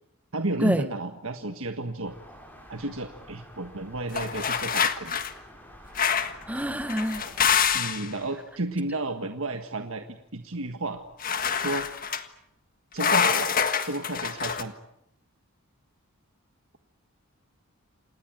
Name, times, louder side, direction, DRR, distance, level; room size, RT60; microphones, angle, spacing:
voice 1, 0.3-2.1 2.7-5.2 7.7-11.0 11.5-11.8 12.9-14.7, right 2 dB, 65° right, 6 dB, 1.6 m, -32 dB
sound 1, 2.0-7.5, equal, 10° left, 7.5 m, -49 dB
sound 2, 4.1-5.3 6.0-6.4 6.9-8.1 11.2-12.2 13.0-14.6, left 7 dB, 40° left, 1.6 m, -26 dB
voice 2, 6.5-7.3, equal, 5° right, 10 dB, 1.4 m, -26 dB
28.5 x 19.5 x 9.1 m, 0.79 s
head